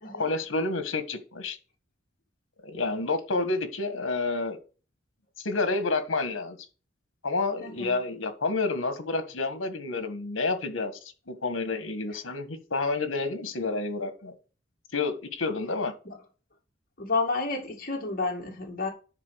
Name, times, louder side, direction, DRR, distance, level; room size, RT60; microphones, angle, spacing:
voice 1, 0.1-1.6 2.6-4.6 5.4-6.6 7.2-14.3 14.9-15.9, left 3 dB, 80° left, 1.6 m, -29 dB
voice 2, 7.6-7.9 16.1-16.2 17.0-18.9, left 3 dB, 50° left, 2.3 m, -30 dB
9.9 x 4.3 x 6.4 m
head